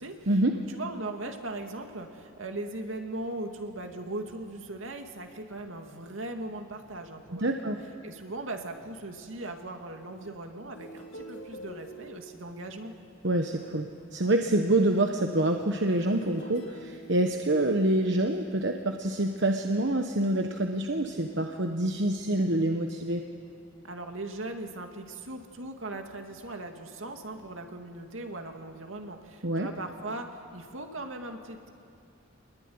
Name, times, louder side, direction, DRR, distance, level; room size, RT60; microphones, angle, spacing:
voice 1, 0.0-7.7 8.0-12.9 23.8-31.7, right 2 dB, 75° right, 4 dB, 2.4 m, -39 dB
voice 2, 7.3-7.8 13.2-23.2 29.4-29.7, right 1 dB, 60° right, 4 dB, 1.2 m, -26 dB
sound 1, 10.7-18.0 18.6-18.8, right 1 dB, 65° left, 3.5 m, -48 dB
26.0 x 21.5 x 9.6 m, 2.5 s
head